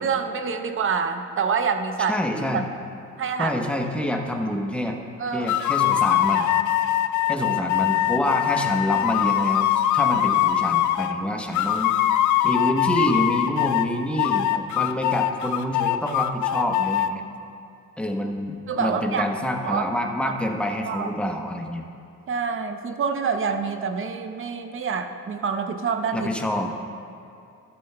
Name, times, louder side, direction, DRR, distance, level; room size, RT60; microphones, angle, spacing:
voice 1, 0.0-2.1 2.5-2.6 3.2-3.5 5.2-5.6 18.7-19.3 19.6-19.8 20.2-20.3 20.9-21.1 22.3-26.3, right 6 dB, 45° right, 7 dB, 0.7 m, -26 dB
voice 2, 2.1-2.7 3.4-5.0 5.3-6.5 7.3-11.9 12.4-17.2 18.0-21.8 26.1-26.7, equal, 5° left, 2 dB, 0.9 m, -27 dB
sound 1, 5.5-11.1 11.5-13.9 14.2-17.1, left 12 dB, 75° left, 0.5 m, -22 dB
12.5 x 12.0 x 2.2 m, 2.5 s
cardioid pair, 90°, 30 cm